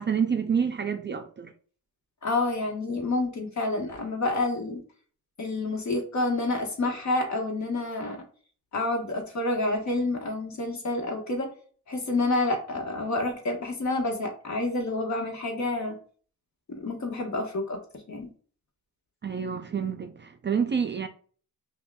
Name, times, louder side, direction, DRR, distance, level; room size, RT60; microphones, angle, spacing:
voice 1, 0.0-1.5 19.2-21.1, right 6 dB, 30° right, 0.4 m, -28 dB
voice 2, 2.2-4.8 5.4-8.2 8.7-11.5 11.9-16.0 16.8-17.8 18.1-18.3, left 2 dB, 50° left, 1.2 m, -28 dB
5.4 x 2.3 x 2.2 m
cardioid pair, 95°, 36 cm